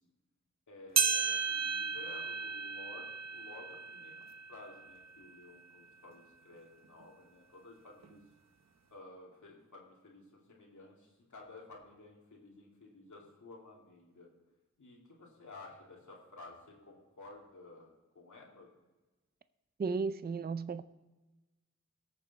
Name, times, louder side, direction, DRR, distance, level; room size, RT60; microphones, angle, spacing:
voice 1, 0.7-8.2 8.9-14.3 14.8-17.9 18.1-18.7, left 2 dB, 90° left, 2.7 m, -53 dB
sound 1, 1.0-5.6 6.1-6.2 7.0-7.1 8.0-8.1, right 5 dB, 65° right, 0.9 m, -35 dB
voice 2, 19.8-20.8, right 4 dB, 35° right, 0.5 m, -34 dB
18.5 x 6.9 x 4.2 m
wide cardioid pair, 50°, 29 cm